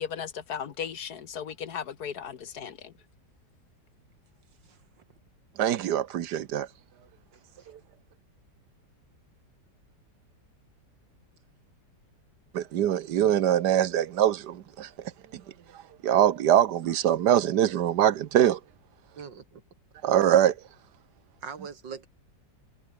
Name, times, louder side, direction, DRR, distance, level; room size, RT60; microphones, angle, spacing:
voice 1, 0.0-2.9, left 8 dB, 60° left, 1.7 m, -36 dB
voice 2, 5.6-6.7 12.5-14.9 15.3-15.4 16.0-18.6 20.0-20.6, right 11 dB, 70° right, 1.5 m, -23 dB
voice 3, 19.2-19.6 21.4-22.1, right 6 dB, 90° right, 2.9 m, -41 dB
omnidirectional pair, 1.9 m